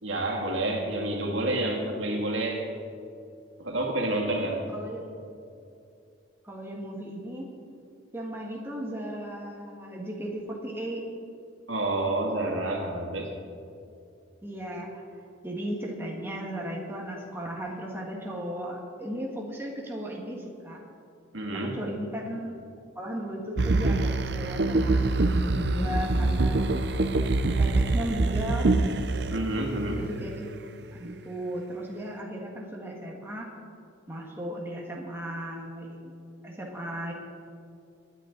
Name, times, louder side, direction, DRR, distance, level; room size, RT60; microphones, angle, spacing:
voice 1, 0.0-2.7 3.6-4.6 11.7-13.3 21.3-21.8 29.3-30.0, right 2 dB, 85° right, 0 dB, 2.2 m, -29 dB
voice 2, 4.7-5.2 6.4-7.4 8.1-11.1 14.4-15.0 15.4-20.8 21.5-22.6 22.9-25.1 25.5-26.8 27.6-28.7 30.0-30.5 30.9-33.5 34.1-36.1 36.4-37.1, right 1 dB, 10° right, -2 dB, 1.7 m, -36 dB
sound 1, 23.6-30.5 31.0-31.1, right 2 dB, 60° right, 0.6 m, -25 dB
20.0 x 9.9 x 3.9 m, 2.5 s
head